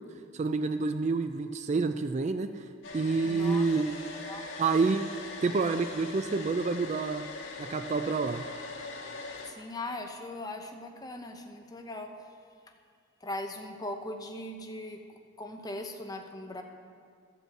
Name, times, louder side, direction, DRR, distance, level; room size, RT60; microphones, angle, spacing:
voice 1, 0.3-2.7 2.9-3.9 4.6-5.1 5.4-7.2 7.6-8.5, right 4 dB, 35° right, 9 dB, 0.3 m, -28 dB
Domestic sounds home sounds, 2.8-9.5, left 3 dB, 75° left, 1.7 m, -41 dB
voice 2, 3.2-3.7 4.3-4.4 9.5-12.1 13.2-15.0 15.4-16.6, left 1 dB, 20° left, 4 dB, 0.7 m, -39 dB
12.5 x 5.3 x 7.6 m, 2.2 s
head